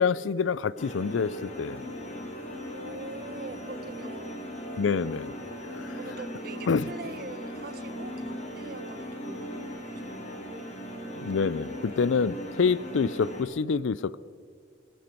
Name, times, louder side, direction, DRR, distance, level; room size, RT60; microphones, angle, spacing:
voice 1, 0.0-1.8 4.8-5.3 5.7-6.0 6.7-6.9 11.1-14.2, left 5 dB, 90° left, 20 dB, 0.5 m, -27 dB
sound 1, 0.8-13.4, equal, 35° left, 2.3 m, -38 dB
voice 2, 2.7-4.4 5.9-10.7, right 3 dB, 50° right, 12 dB, 1.0 m, -43 dB
24.0 x 11.5 x 4.5 m, 2.3 s
head